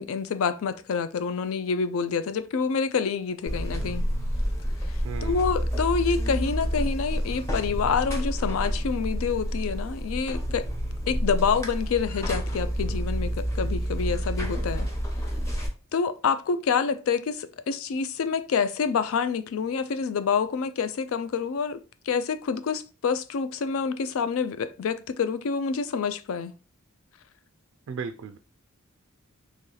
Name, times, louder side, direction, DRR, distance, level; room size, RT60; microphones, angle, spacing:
voice 1, 0.0-4.0 4.9-10.7 11.1-14.9 15.9-21.8 22.1-26.5, left 6 dB, 70° left, 0.4 m, -27 dB
Buzz, 3.5-15.7, equal, 15° left, 0.8 m, -29 dB
voice 2, 5.0-5.7 27.9-28.4, right 6 dB, 65° right, 0.3 m, -36 dB
3.1 x 2.8 x 3.8 m
head